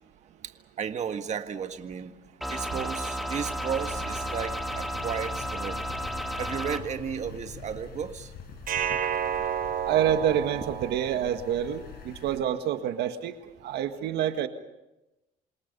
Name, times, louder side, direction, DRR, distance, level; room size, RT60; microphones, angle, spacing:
voice 1, 0.4-2.2 2.5-5.8 6.4-8.3 8.9-9.0, right 7 dB, 45° right, 7 dB, 1.7 m, -34 dB
sound 1, 2.4-6.8, equal, ahead, 3.0 m, -33 dB
sound 2, 3.6-12.4, left 6 dB, 70° left, 5.4 m, -44 dB
sound 3, 8.7-11.7, right 9 dB, 60° right, 4.6 m, -31 dB
voice 2, 9.8-13.3 13.6-14.5, right 10 dB, 75° right, 8 dB, 1.8 m, -27 dB
28.5 x 26.5 x 5.5 m, 0.97 s
cardioid pair, 110°, 17 cm